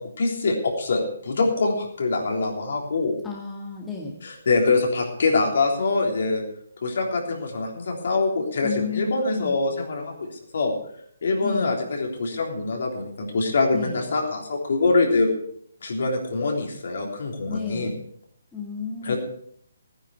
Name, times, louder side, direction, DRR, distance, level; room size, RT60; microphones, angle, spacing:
voice 1, 0.0-3.2 4.2-6.4 6.8-10.3 10.5-10.7 11.2-15.3 15.8-17.9 19.0-19.2, left 3 dB, 55° left, 1 dB, 3.5 m, -24 dB
voice 2, 3.2-4.2 8.6-9.6 11.4-11.7 13.7-14.0 17.5-18.0 18.5-19.1, left 6 dB, 10° left, -2 dB, 1.9 m, -32 dB
16.0 x 10.0 x 4.7 m, 0.65 s
figure-of-eight pair, 140°, 0 cm